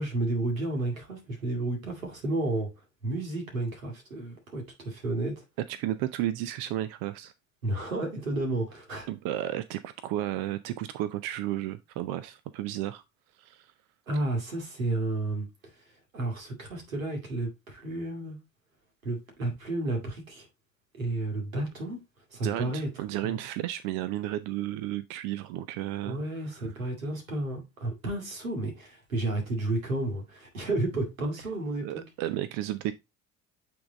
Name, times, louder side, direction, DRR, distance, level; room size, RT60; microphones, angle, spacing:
voice 1, 0.0-2.7 3.0-5.3 7.6-9.1 14.1-15.5 16.1-18.4 19.0-20.5 21.0-22.0 22.3-22.9 23.2-23.4 26.0-32.0, right 2 dB, 90° right, 2.3 m, -31 dB
voice 2, 5.7-7.3 9.1-13.0 13.4-13.7 21.6-21.7 22.4-26.2 31.8-32.9, right 13 dB, 60° right, 0.6 m, -33 dB
8.6 x 3.7 x 3.9 m
hypercardioid pair, 65°, 39 cm